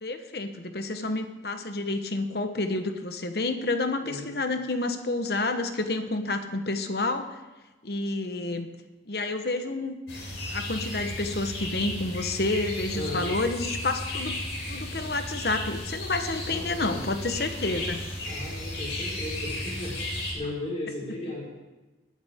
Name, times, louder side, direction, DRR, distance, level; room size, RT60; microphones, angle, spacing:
voice 1, 0.0-7.4 7.8-8.7 9.1-9.9 10.5-14.4 14.7-18.0, left 2 dB, 60° left, 7 dB, 1.2 m, -29 dB
sound 1, 10.1-20.3, left 1 dB, 90° left, 4.8 m, -34 dB
voice 2, 12.9-13.3 16.5-17.0 18.2-21.5, left 2 dB, 35° left, -5 dB, 4.8 m, -36 dB
20.5 x 12.0 x 3.7 m, 1.1 s
head